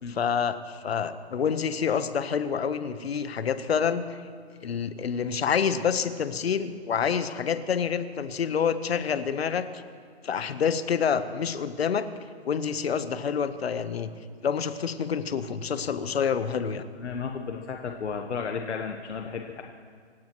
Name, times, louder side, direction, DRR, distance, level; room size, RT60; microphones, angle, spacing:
voice 1, 0.1-4.0 4.6-9.7 10.2-12.1 12.5-14.1 14.4-16.8, left 7 dB, 65° left, 11 dB, 1.1 m, -27 dB
voice 2, 17.0-19.6, left 5 dB, 85° left, 3 dB, 1.3 m, -33 dB
26.5 x 16.5 x 3.1 m, 2.1 s
hypercardioid pair, 175°, 34 cm